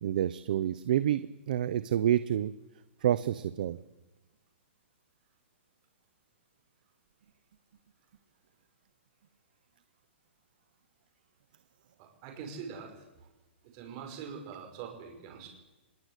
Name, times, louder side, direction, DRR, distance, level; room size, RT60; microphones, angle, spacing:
voice 1, 0.0-2.5 3.0-3.8, right 11 dB, 40° right, 14 dB, 0.8 m, -28 dB
voice 2, 12.0-13.0 13.6-15.5, right 6 dB, 25° right, 3 dB, 5.7 m, -43 dB
25.0 x 21.5 x 8.4 m, 1.1 s
hypercardioid pair, 180°, 7 cm